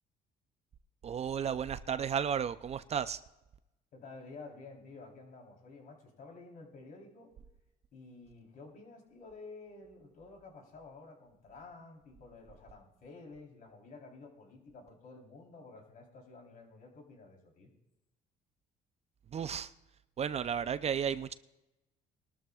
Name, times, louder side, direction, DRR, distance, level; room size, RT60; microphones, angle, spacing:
voice 1, 1.0-3.2 19.3-19.7 20.2-21.3, right 8 dB, 40° right, 13 dB, 0.5 m, -33 dB
voice 2, 3.9-7.3 7.9-17.7, left 3 dB, 55° left, 0 dB, 3.7 m, -51 dB
21.5 x 12.5 x 2.4 m, 0.96 s
cardioid pair, 110°, 17 cm